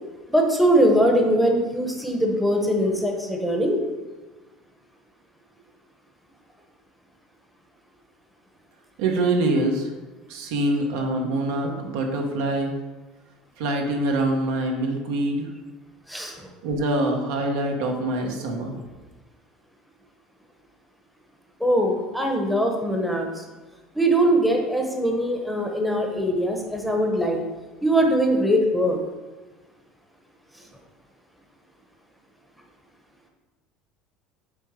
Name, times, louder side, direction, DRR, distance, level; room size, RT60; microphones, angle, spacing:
voice 1, 0.3-3.8 16.1-16.5 21.6-23.4 23.9-27.4 27.8-29.0, equal, ahead, 1 dB, 0.8 m, -21 dB
voice 2, 9.0-9.9 10.3-12.7 13.6-15.5 16.6-18.7, right 2 dB, 80° right, 2 dB, 1.2 m, -24 dB
6.9 x 3.5 x 5.1 m, 1.2 s
cardioid pair, 135°, 0 cm